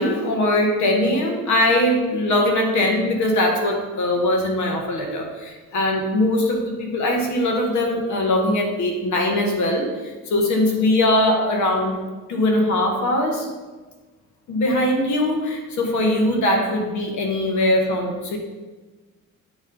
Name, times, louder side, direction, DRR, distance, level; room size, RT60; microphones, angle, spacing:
voice 1, 0.0-9.9 10.3-12.0 12.3-13.5 14.5-18.4, left 1 dB, 75° left, 1 dB, 1.3 m, -21 dB
8.9 x 3.2 x 3.9 m, 1.3 s
cardioid pair, 90°, 30 cm